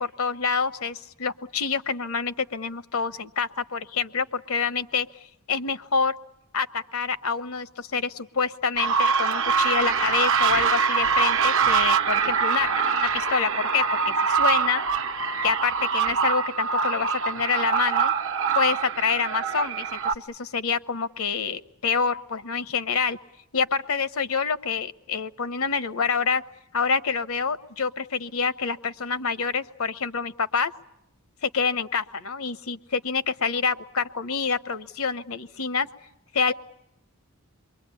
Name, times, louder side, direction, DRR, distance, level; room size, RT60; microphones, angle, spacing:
voice 1, 0.0-6.2 6.5-14.8 15.4-18.1 18.5-23.2 23.5-26.4 26.7-30.7 31.4-35.9 36.3-36.5, left 5 dB, 70° left, 13 dB, 0.9 m, -27 dB
sound 1, 8.8-20.2, right 6 dB, 60° right, 1.0 m, -24 dB
28.0 x 23.0 x 8.4 m, 0.85 s
head